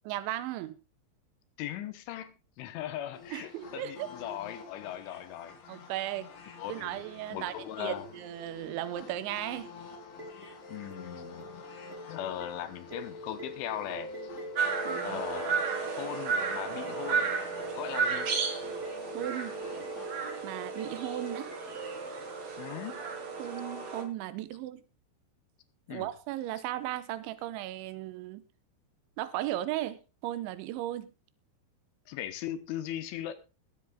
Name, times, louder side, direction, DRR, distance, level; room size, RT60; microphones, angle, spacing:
voice 1, 0.1-0.8 3.3-4.1 5.7-6.3 6.7-9.7 14.8-15.2 19.1-19.6 20.4-21.5 23.4-24.8 25.9-28.4 29.2-31.1, right 14 dB, 80° right, 3.2 m, -36 dB
voice 2, 1.6-5.6 6.6-7.0 7.3-8.1 10.7-11.5 12.1-14.1 15.0-15.6 16.0-17.3 17.8-18.4 22.6-23.1 25.9-26.1 32.1-33.3, left 12 dB, 80° left, 3.5 m, -39 dB
sound 1, 3.1-20.1, left 4 dB, 50° left, 3.4 m, -48 dB
sound 2, 10.2-22.5, equal, 25° right, 1.5 m, -45 dB
sound 3, 14.6-24.0, right 5 dB, 45° right, 2.3 m, -33 dB
20.5 x 7.7 x 3.7 m
omnidirectional pair, 5.6 m